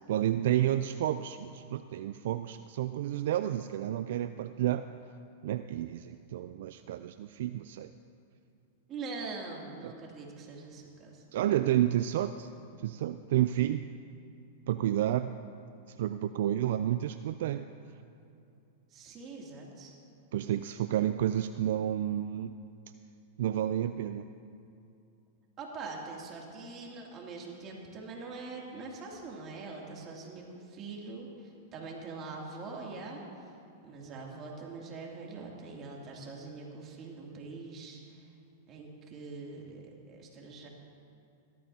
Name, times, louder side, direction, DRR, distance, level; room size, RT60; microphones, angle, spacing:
voice 1, 0.1-4.9 5.4-7.9 9.8-9.9 11.3-12.5 12.8-13.9 14.7-15.4 15.9-17.7 20.3-22.5 23.4-24.3, right 12 dB, 70° right, 11 dB, 0.3 m, -30 dB
voice 2, 8.9-11.2 18.9-20.0 25.6-33.5 33.8-38.3 38.7-40.7, right 3 dB, 35° right, -2 dB, 2.7 m, -43 dB
17.5 x 13.0 x 2.8 m, 2.7 s
hypercardioid pair, 115°, 0 cm